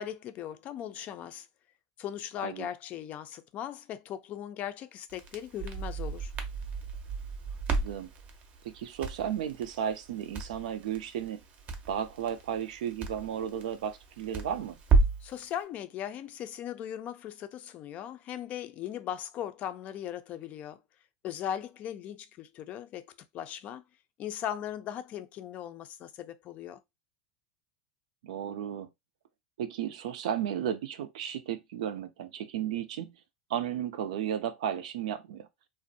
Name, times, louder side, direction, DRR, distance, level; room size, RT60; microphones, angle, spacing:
voice 1, 0.0-1.5 2.0-6.3 15.2-20.8 21.2-23.8 24.2-26.8, left 10 dB, 40° left, 0.4 m, -38 dB
Crackle, 5.1-15.3, right 4 dB, 35° right, 0.6 m, -33 dB
voice 2, 7.7-8.1 8.6-11.4 11.9-14.8 28.2-28.9 29.6-33.1 33.5-35.5, right 9 dB, 85° right, 0.5 m, -34 dB
2.5 x 2.0 x 2.6 m
supercardioid pair, 125°, 4 cm